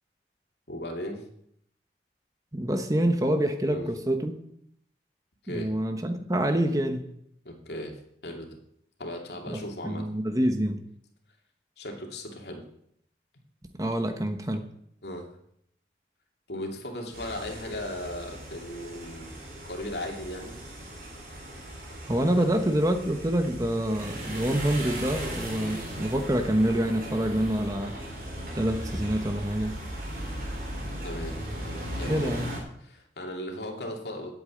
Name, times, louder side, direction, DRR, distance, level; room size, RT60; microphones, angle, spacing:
voice 1, 0.7-1.3 3.7-3.9 5.4-5.7 7.4-8.6 9.0-10.0 11.8-12.6 15.0-15.4 16.5-19.4 19.6-20.6 22.3-22.5 25.6-25.9 31.0-31.4 31.9-32.4 32.8-34.3, left 1 dB, 75° left, 2 dB, 2.5 m, -37 dB
voice 2, 2.5-4.4 5.5-7.0 9.5-10.8 13.8-14.7 22.1-27.9 28.6-29.8 32.1-32.5, right 1 dB, 20° right, 7 dB, 1.0 m, -26 dB
sound 1, 17.1-32.6, right 1 dB, 50° right, 3.8 m, -37 dB
9.0 x 8.5 x 8.7 m, 0.72 s
head